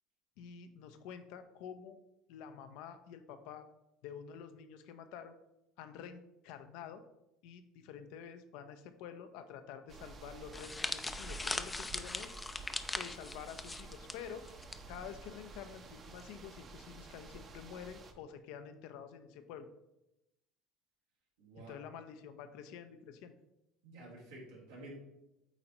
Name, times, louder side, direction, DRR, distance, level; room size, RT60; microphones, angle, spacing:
voice 1, 0.4-2.0 2.3-3.7 4.0-5.4 5.8-7.0 7.4-12.3 12.9-14.4 14.9-19.7 21.6-23.3, left 7 dB, 70° left, 9 dB, 0.6 m, -48 dB
sound 1, 9.9-18.1, right 3 dB, 40° right, 0.8 m, -51 dB
sound 2, 10.5-14.8 15.1-15.3 16.2-16.5, left 3 dB, 15° left, 0.4 m, -40 dB
voice 2, 21.4-21.7 23.8-25.0, right 2 dB, 85° right, -4 dB, 2.1 m, -50 dB
8.0 x 4.2 x 2.9 m, 0.90 s
hypercardioid pair, 80°, 0 cm